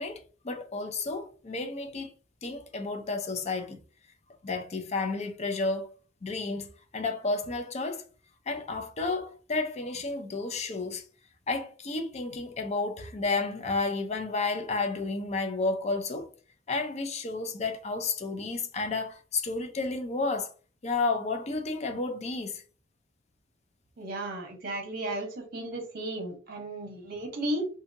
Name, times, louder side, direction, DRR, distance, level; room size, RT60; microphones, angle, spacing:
voice 1, 0.0-2.1 2.4-3.8 4.4-6.0 6.2-8.1 8.5-11.1 11.5-16.3 16.7-20.5 20.8-22.6, left 3 dB, 35° left, 0.5 m, -31 dB
voice 2, 24.0-27.7, right 1 dB, 55° right, 0.8 m, -34 dB
2.7 x 2.7 x 2.5 m
head